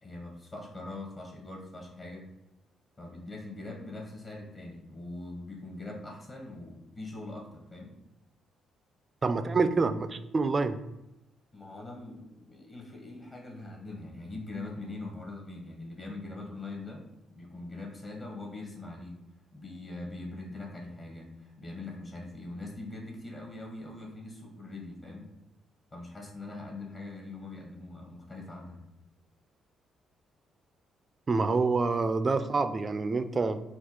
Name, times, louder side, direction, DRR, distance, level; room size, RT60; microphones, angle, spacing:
voice 1, 0.0-2.2 3.0-7.9 11.5-17.0 17.3-19.1 19.5-25.3 25.9-28.8, left 2 dB, 35° left, 0 dB, 1.3 m, -42 dB
voice 2, 9.2-10.8 31.3-33.6, right 4 dB, 35° right, 11 dB, 0.3 m, -27 dB
4.4 x 2.3 x 4.3 m, 0.94 s
cardioid pair, 90°, 0 cm